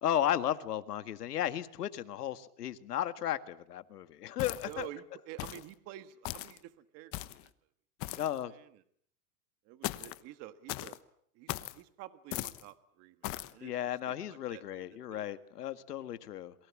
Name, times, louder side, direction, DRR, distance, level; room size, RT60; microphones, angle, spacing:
voice 1, 0.0-4.9 8.2-8.5 13.6-16.5, left 11 dB, 85° left, 11 dB, 2.0 m, -34 dB
sound 1, 4.4-4.9 5.4-5.7 6.2-6.6 7.1-7.5 8.0-8.4 9.8-10.2 10.7-11.0 11.5-11.8 12.3-12.6 13.2-13.5, left 18 dB, 30° left, 1.1 m, -38 dB
voice 2, 4.6-7.5 8.1-8.8 9.6-11.0 11.3-13.7 14.1-15.2, right 13 dB, 35° right, 11 dB, 1.6 m, -50 dB
28.5 x 23.0 x 7.3 m, 0.65 s
supercardioid pair, 150°, 45 cm